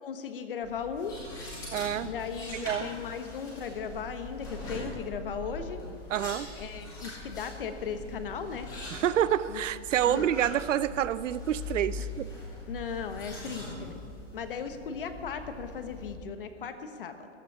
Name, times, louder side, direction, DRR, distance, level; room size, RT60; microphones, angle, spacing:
voice 1, 0.0-1.2 2.0-5.8 6.6-8.7 9.5-9.6 10.1-10.3 12.7-14.0 14.3-17.3, left 6 dB, 45° left, 9 dB, 1.1 m, -37 dB
sound 1, 0.6-16.1, left 2 dB, 10° left, 2.1 m, -42 dB
voice 2, 1.7-2.1 2.5-2.9 6.1-6.5 8.9-12.3, right 11 dB, 80° right, 16 dB, 0.6 m, -28 dB
14.0 x 11.5 x 6.1 m, 2.4 s
hypercardioid pair, 180°, 37 cm